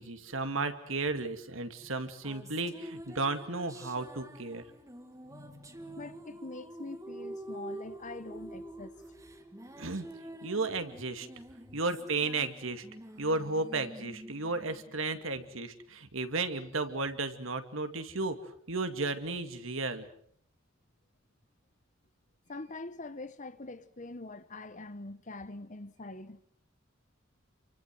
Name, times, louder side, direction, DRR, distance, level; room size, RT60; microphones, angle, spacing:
voice 1, 0.0-4.6 9.8-10.1 10.4-11.3 11.7-12.8 13.2-18.4 18.7-20.1, right 3 dB, 70° right, 2.4 m, -34 dB
sound 1, 1.9-15.6, right 1 dB, 15° right, 2.3 m, -47 dB
voice 2, 5.2-9.0 11.6-11.8 22.5-26.4, left 2 dB, 35° left, 1.2 m, -44 dB
29.0 x 24.5 x 6.2 m
head